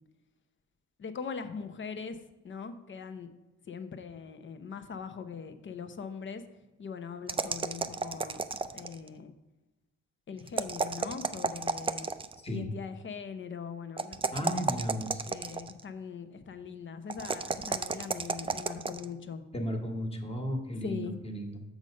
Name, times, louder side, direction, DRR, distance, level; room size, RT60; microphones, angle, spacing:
voice 1, 1.0-2.2 2.4-3.3 3.7-6.4 6.8-8.4 8.7-9.3 10.3-12.1 12.5-14.7 15.3-19.4 20.8-21.2, left 6 dB, 40° left, 9 dB, 0.8 m, -41 dB
sound 1, 7.3-9.1 10.5-12.4 14.0-15.8 17.1-19.0, right 4 dB, 20° right, 0.4 m, -32 dB
voice 2, 14.3-15.2 19.5-21.6, equal, 20° left, 4 dB, 1.5 m, -34 dB
6.5 x 6.2 x 5.3 m, 1.1 s
cardioid pair, 90°, 30 cm